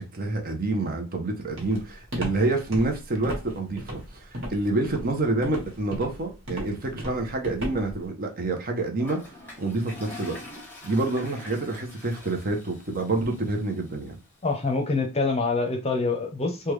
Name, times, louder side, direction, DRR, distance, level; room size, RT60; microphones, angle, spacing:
voice 1, 0.0-9.2 9.6-10.4 10.8-14.2, right 2 dB, 45° right, 0.7 m, -27 dB
Walk footsteps, 1.6-8.0, equal, 60° right, 1.4 m, -35 dB
Toilet flush, 9.0-14.0, left 2 dB, 10° left, 0.9 m, -44 dB
voice 2, 14.4-16.7, left 3 dB, 30° left, 0.6 m, -25 dB
3.3 x 2.2 x 3.1 m
head